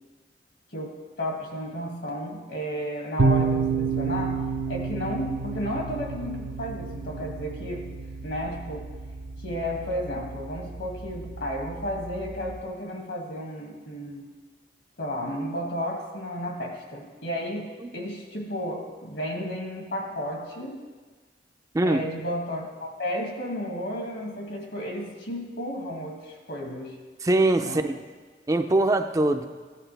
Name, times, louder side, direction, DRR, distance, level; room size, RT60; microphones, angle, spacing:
voice 1, 0.7-7.9 8.2-8.9 9.4-14.2 15.0-20.8 21.8-27.0 27.6-27.9, equal, 75° left, 0 dB, 2.1 m, -33 dB
sound 1, 3.2-12.6, right 4 dB, 75° right, 0.6 m, -30 dB
voice 2, 27.2-28.0 28.5-29.5, right 2 dB, 20° right, 7 dB, 0.4 m, -22 dB
14.5 x 9.9 x 3.3 m, 1.4 s
head